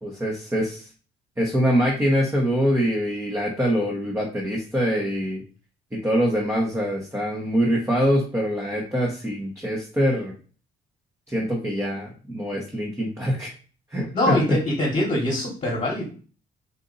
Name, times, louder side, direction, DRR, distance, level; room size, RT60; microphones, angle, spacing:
voice 1, 0.0-0.9 1.4-5.4 5.9-10.3 11.3-13.5 13.9-14.6, equal, 10° right, -2 dB, 1.0 m, -24 dB
voice 2, 14.1-16.1, left 1 dB, 35° left, -5 dB, 1.4 m, -23 dB
3.9 x 2.6 x 3.9 m, 0.39 s
cardioid pair, 90°, 20 cm